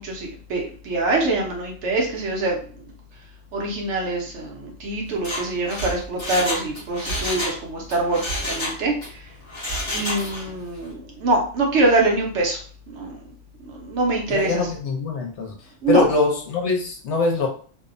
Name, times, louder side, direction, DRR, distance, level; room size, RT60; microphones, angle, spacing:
voice 1, 0.0-2.6 3.5-9.0 9.9-12.6 12.9-13.2 13.7-14.7 15.8-16.0, right 2 dB, 70° right, 0 dB, 0.9 m, -24 dB
Mechanisms, 5.1-7.6 7.9-9.1 9.5-10.6 10.9-11.0, left 1 dB, 25° left, 0.8 m, -29 dB
voice 2, 14.3-15.5 15.9-17.5, left 3 dB, 70° left, 1 dB, 0.9 m, -22 dB
2.6 x 2.0 x 2.5 m, 0.43 s
omnidirectional pair, 1.3 m